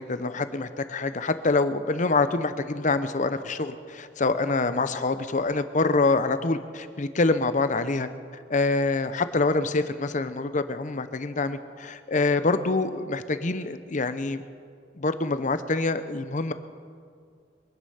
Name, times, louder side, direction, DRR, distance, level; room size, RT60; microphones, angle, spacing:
voice 1, 0.0-8.1 8.5-14.4 15.0-16.5, left 3 dB, 45° left, 11 dB, 0.7 m, -25 dB
23.5 x 10.0 x 5.7 m, 2.3 s
head